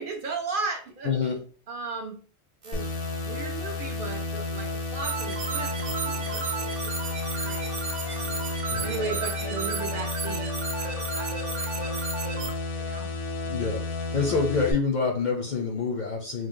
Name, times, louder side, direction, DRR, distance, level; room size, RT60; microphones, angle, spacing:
voice 1, 0.0-1.1 1.7-2.2 2.6-7.8 8.0-8.5 8.8-12.5 12.7-13.1 14.1-14.4, right 4 dB, 60° right, 2 dB, 0.6 m, -37 dB
voice 2, 1.0-1.4 8.7-8.9 13.4-13.8 14.1-16.5, left 5 dB, 55° left, 1 dB, 0.6 m, -26 dB
sound 1, 2.6-8.6, right 2 dB, 45° right, 1.0 m, -47 dB
sound 2, 2.7-14.7, left 3 dB, 90° left, 1.0 m, -32 dB
sound 3, 5.0-12.5, right 5 dB, 85° right, 1.0 m, -33 dB
3.1 x 2.1 x 3.6 m, 0.41 s
omnidirectional pair, 1.2 m